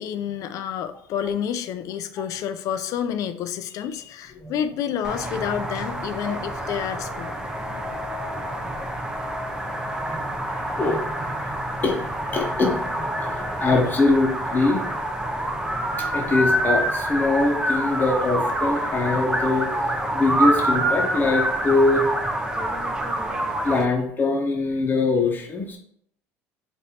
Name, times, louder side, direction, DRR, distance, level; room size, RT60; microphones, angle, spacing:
voice 1, 0.0-7.3, left 9 dB, 60° left, 10 dB, 0.4 m, -29 dB
sound 1, 5.0-23.8, right 1 dB, 10° right, 0.6 m, -27 dB
voice 2, 7.6-7.9 8.2-9.3 9.6-14.9 16.0-22.1 23.6-25.8, left 3 dB, 30° left, 0 dB, 0.8 m, -24 dB
3.3 x 2.5 x 4.2 m, 0.67 s
supercardioid pair, 80°, 6 cm